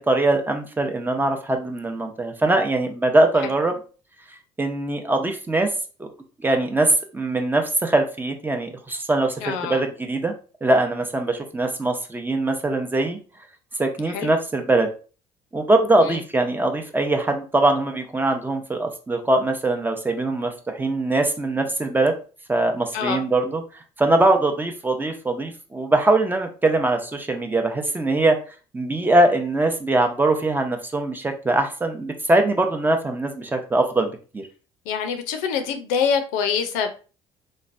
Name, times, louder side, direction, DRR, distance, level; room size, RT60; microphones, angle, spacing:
voice 1, 0.0-3.7 4.6-5.7 6.0-6.1 6.4-10.3 10.6-13.2 13.8-14.9 15.5-22.1 22.5-23.6 24.0-28.4 28.7-34.4, right 2 dB, 15° right, 5 dB, 0.6 m, -22 dB
voice 2, 9.4-9.8 14.1-14.3 16.0-16.2 22.9-23.2 34.9-36.9, left 6 dB, 85° left, 6 dB, 0.5 m, -25 dB
3.1 x 2.2 x 2.5 m, 0.36 s
supercardioid pair, 80°, 13 cm